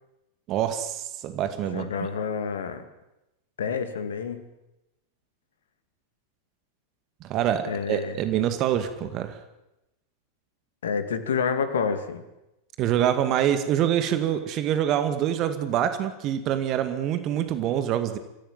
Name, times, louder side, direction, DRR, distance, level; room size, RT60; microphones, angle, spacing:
voice 1, 0.5-1.9 7.2-9.4 12.8-18.2, right 10 dB, 35° right, 9 dB, 2.1 m, -25 dB
voice 2, 1.7-2.8 3.6-4.5 7.7-8.2 10.8-12.2, left 6 dB, 65° left, 10 dB, 2.4 m, -28 dB
25.0 x 16.0 x 9.0 m, 0.93 s
figure-of-eight pair, 90°, 0 cm